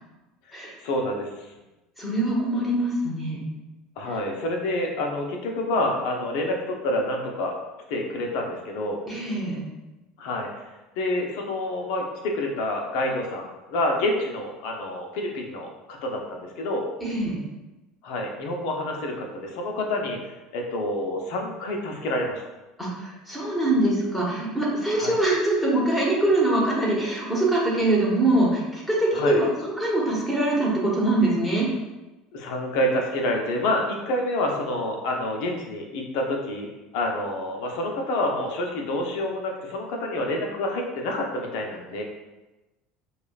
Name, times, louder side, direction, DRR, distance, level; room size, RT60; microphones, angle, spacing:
voice 1, 0.8-1.3 4.0-7.5 7.9-9.0 10.2-10.5 11.0-16.9 18.0-20.2 20.5-22.4 25.0-25.2 29.1-29.4 32.3-36.7 36.9-42.0, left 1 dB, 70° left, 1 dB, 0.7 m, -28 dB
voice 2, 2.0-3.4 9.1-9.6 17.0-17.4 22.8-31.7, right 1 dB, 5° left, -4 dB, 1.3 m, -23 dB
4.8 x 2.4 x 2.4 m, 1.1 s
supercardioid pair, 90°, 0 cm